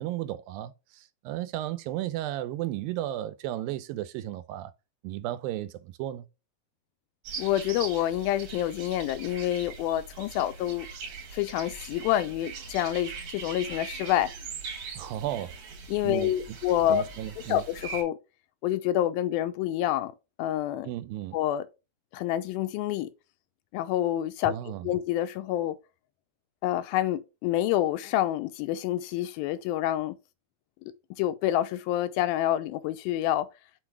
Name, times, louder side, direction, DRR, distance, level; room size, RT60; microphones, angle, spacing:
voice 1, 0.0-4.7 5.0-6.3 15.0-15.6 16.0-16.6 16.9-17.6 20.8-21.4 24.5-24.9, right 13 dB, 80° right, 2.2 m, -34 dB
sound 1, 7.2-18.0, right 5 dB, 55° right, 2.2 m, -41 dB
voice 2, 7.4-10.9 11.3-14.3 15.9-17.0 17.5-18.2 18.6-20.1 20.4-20.9 21.3-21.6 22.1-23.1 23.7-24.6 24.8-25.8 26.6-30.2 31.2-33.5, left 12 dB, 90° left, 2.4 m, -27 dB
6.4 x 4.0 x 4.5 m
omnidirectional pair, 4.2 m